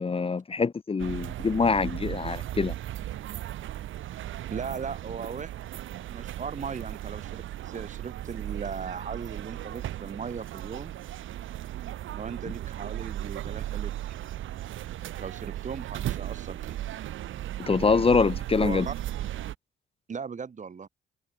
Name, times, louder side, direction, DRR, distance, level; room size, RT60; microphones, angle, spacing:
voice 1, 0.0-2.7 17.6-18.9, left 4 dB, 30° left, 1.2 m, -24 dB
sound 1, 1.0-19.6, right 13 dB, 80° right, 3.0 m, -36 dB
voice 2, 4.5-5.5 6.1-10.9 12.1-14.0 15.2-16.8 18.6-18.9 20.1-20.9, right 6 dB, 40° right, 2.5 m, -38 dB
cardioid pair, 90°, 20 cm